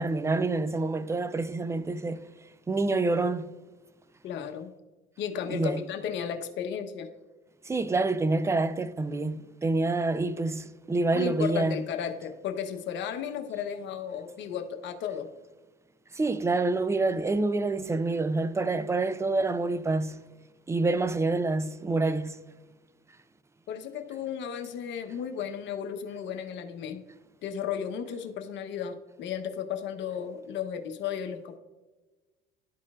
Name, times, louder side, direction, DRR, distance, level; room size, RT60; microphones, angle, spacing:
voice 1, 0.0-2.2 2.7-3.5 5.5-5.9 7.7-11.8 16.1-20.2 20.7-22.4, right 3 dB, 15° right, 0.3 m, -27 dB
voice 2, 4.2-4.7 5.2-7.1 11.1-15.3 23.7-27.0 27.4-31.6, left 8 dB, 60° left, 0.9 m, -34 dB
12.0 x 4.3 x 2.4 m
supercardioid pair, 100°, 21 cm